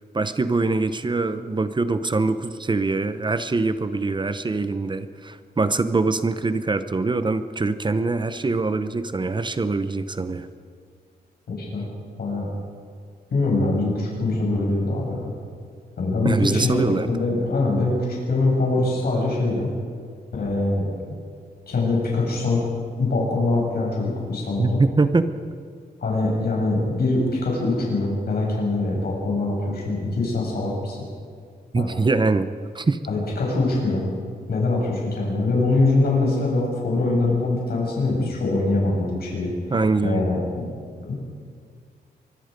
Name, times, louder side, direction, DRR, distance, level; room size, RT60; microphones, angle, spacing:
voice 1, 0.1-10.5 16.2-17.1 24.6-25.3 31.7-32.5 32.7-33.0 39.7-40.3, right 3 dB, 25° right, 11 dB, 0.8 m, -23 dB
voice 2, 13.3-15.3 16.0-19.7 20.3-20.9 21.7-22.6 23.0-24.8 26.0-31.0 31.7-31.9 33.1-34.0 34.5-39.5 40.0-40.6 41.0-41.1, left 2 dB, 65° left, -3 dB, 6.9 m, -23 dB
24.5 x 22.0 x 5.3 m, 2.1 s
wide cardioid pair, 150°, 17 cm